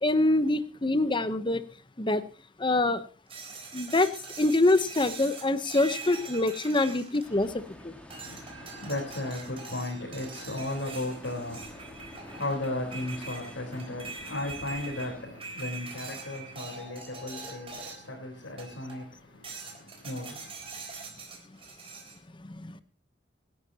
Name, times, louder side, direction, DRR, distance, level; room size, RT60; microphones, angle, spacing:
voice 1, 0.0-1.6 2.0-2.2 2.6-3.0 3.7-4.1 4.4-7.9 22.4-22.8, left 2 dB, 25° left, 0.9 m, -25 dB
sound 1, 3.3-7.7 8.1-18.2 18.6-19.1 19.4-22.2, right 4 dB, 30° right, 3.9 m, -43 dB
sound 2, 7.2-15.2, left 1 dB, 5° left, 2.0 m, -49 dB
voice 2, 8.1-20.7, left 1 dB, 85° left, 4.2 m, -36 dB
25.0 x 11.0 x 2.9 m
head